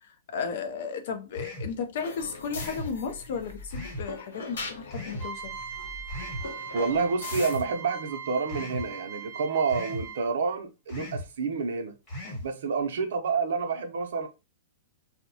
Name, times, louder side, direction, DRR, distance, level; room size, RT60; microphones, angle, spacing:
voice 1, 0.0-5.6 12.2-12.4, left 6 dB, 50° left, 0.4 m, -34 dB
sound 1, 1.3-1.8 2.5-2.9 3.7-4.1 4.9-5.3 6.1-6.4 7.3-7.7 8.5-8.9 9.7-10.1 10.9-11.3 12.1-12.5, equal, 15° left, 1.0 m, -37 dB
sound 2, 2.0-7.6, left 3 dB, 85° left, 0.7 m, -41 dB
sound 3, 5.2-10.4, right 7 dB, 15° right, 0.5 m, -40 dB
voice 2, 6.7-11.9 12.4-14.3, right 4 dB, 65° right, 0.5 m, -28 dB
2.7 x 2.1 x 2.6 m
hypercardioid pair, 175°, 0 cm